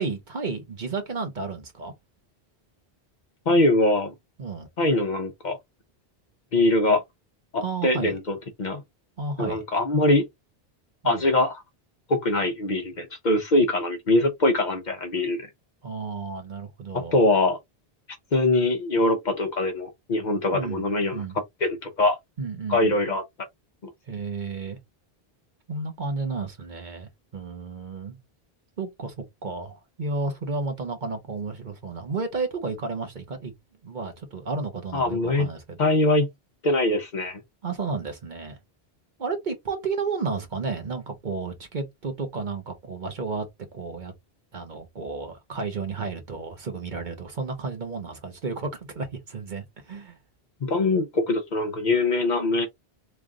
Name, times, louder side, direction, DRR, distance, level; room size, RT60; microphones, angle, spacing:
voice 1, 0.0-1.9 4.4-4.7 7.6-8.2 9.2-9.6 11.0-11.2 15.8-17.1 20.5-20.8 21.1-21.4 22.4-23.0 24.1-24.8 25.7-28.2 28.8-33.5 33.8-35.8 37.6-38.6 39.2-43.5 43.7-44.1 44.5-50.2, right 4 dB, 50° right, 1.0 m, -32 dB
voice 2, 3.5-4.1 4.8-5.6 6.5-7.0 7.5-8.8 9.4-10.2 11.0-11.6 12.1-15.5 17.1-17.6 18.3-21.2 21.6-22.2 22.7-23.2 34.9-35.5 35.8-36.3 36.6-37.4 50.6-52.7, left 2 dB, 50° left, 0.8 m, -22 dB
3.2 x 2.4 x 3.6 m
omnidirectional pair, 1.0 m